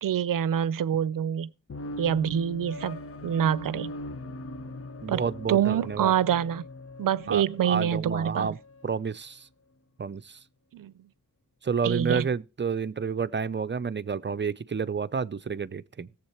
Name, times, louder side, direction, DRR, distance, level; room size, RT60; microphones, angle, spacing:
voice 1, 0.0-1.5 2.0-3.9 5.1-5.2 5.5-6.6 7.0-8.5 10.7-10.9 11.8-12.3, right 9 dB, 85° right, 0.6 m, -26 dB
sound 1, 1.7-9.0, left 2 dB, 45° left, 1.0 m, -41 dB
voice 2, 5.0-6.1 7.3-8.6 8.8-9.5 10.0-10.4 11.6-16.1, right 6 dB, 35° right, 0.6 m, -30 dB
17.0 x 7.4 x 4.3 m
cardioid pair, 70°, 32 cm